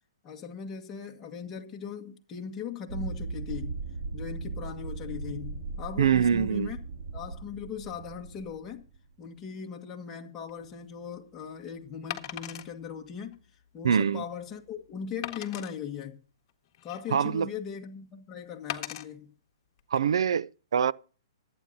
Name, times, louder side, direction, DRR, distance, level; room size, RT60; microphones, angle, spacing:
voice 1, 0.2-3.8 4.1-6.8 7.1-8.8 9.2-13.4 13.7-16.2 16.8-19.3, left 7 dB, 20° left, 1.7 m, -39 dB
sound 1, 2.9-9.1, right 4 dB, 50° right, 2.0 m, -38 dB
voice 2, 6.0-6.7 13.8-14.2 17.1-17.5 19.9-20.9, right 7 dB, 75° right, 0.5 m, -24 dB
Wood, 10.5-10.7 12.1-12.7 13.3-13.4 13.9-14.0 15.2-15.7 16.5-17.3 18.7-19.0 19.8-20.0, left 13 dB, 40° left, 1.6 m, -38 dB
24.5 x 9.0 x 2.8 m
hypercardioid pair, 140°, 3 cm